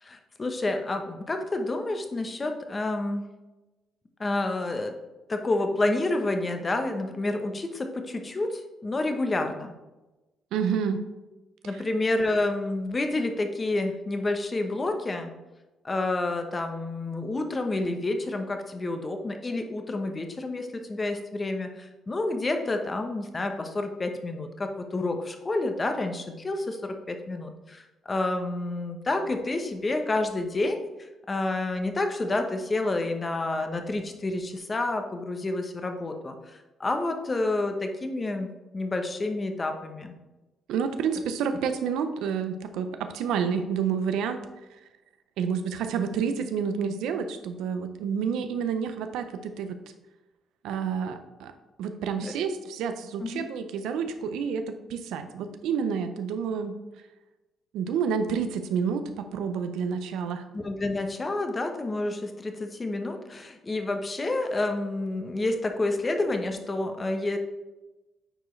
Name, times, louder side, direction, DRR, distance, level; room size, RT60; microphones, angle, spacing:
voice 1, 0.0-3.2 4.2-4.9 5.3-9.7 11.6-15.3 15.8-40.2 52.2-52.3 53.2-53.5 60.5-67.4, left 2 dB, 30° left, 5 dB, 1.0 m, -29 dB
voice 2, 10.5-11.0 11.6-11.8 40.7-44.4 45.4-49.8 50.6-51.5 51.8-56.7 57.7-60.4, right 6 dB, 90° right, 9 dB, 0.6 m, -29 dB
8.9 x 4.6 x 3.2 m, 1.1 s
cardioid pair, 90°, 0 cm